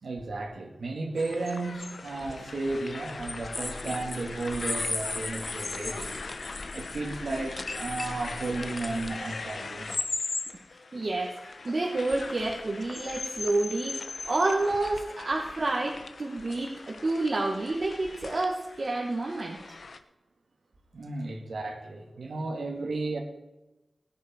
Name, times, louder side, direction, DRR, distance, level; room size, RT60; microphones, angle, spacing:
voice 1, 0.0-6.2 6.7-10.1 20.9-23.2, right 2 dB, 85° right, 3 dB, 2.5 m, -34 dB
sound 1, 1.2-20.0, left 3 dB, 70° left, 1.1 m, -39 dB
sound 2, 3.5-9.2, left 2 dB, 35° left, 0.5 m, -37 dB
voice 2, 10.9-19.8, right 2 dB, 50° right, -1 dB, 1.9 m, -29 dB
18.5 x 10.0 x 4.6 m, 1.0 s
wide cardioid pair, 105°, 0 cm